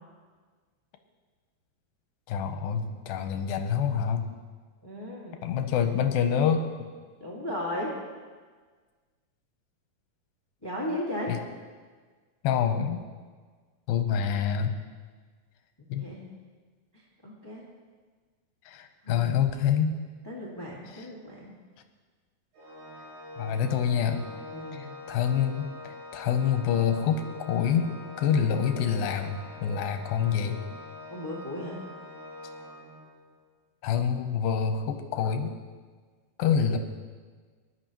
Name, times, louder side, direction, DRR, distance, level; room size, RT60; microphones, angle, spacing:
voice 1, 2.3-4.3 5.4-6.7 11.3-11.4 12.4-13.0 13.9-14.8 15.9-16.1 18.7-20.0 23.4-24.2 24.7-30.6 33.8-35.5 36.4-36.8, left 7 dB, 80° left, 6 dB, 2.6 m, -26 dB
voice 2, 4.8-5.4 7.2-7.9 10.6-11.3 16.0-16.3 16.9-17.6 19.0-19.3 20.2-21.5 24.5-24.9 31.1-31.8, left 1 dB, 15° left, -4 dB, 0.9 m, -36 dB
Organ, 22.5-33.3, left 1 dB, 85° right, 5.6 m, -44 dB
19.5 x 11.5 x 3.0 m, 1.5 s
omnidirectional pair, 4.3 m